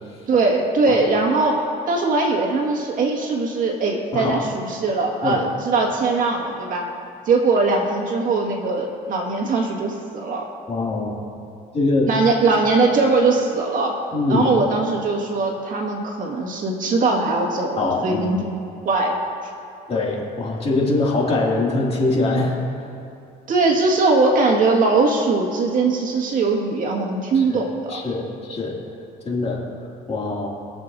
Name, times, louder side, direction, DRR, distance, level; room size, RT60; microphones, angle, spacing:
voice 1, 0.3-6.9 7.3-10.5 12.1-14.0 14.3-18.5 18.8-19.1 23.5-28.0, right 3 dB, 50° right, 0 dB, 1.9 m, -20 dB
voice 2, 10.7-11.2 11.7-12.1 14.1-14.5 17.8-18.4 19.9-22.5 27.3-28.8 29.3-29.6 30.1-30.5, left 2 dB, 35° left, -3 dB, 2.6 m, -23 dB
22.5 x 7.5 x 2.7 m, 2.6 s
cardioid pair, 110°, 17 cm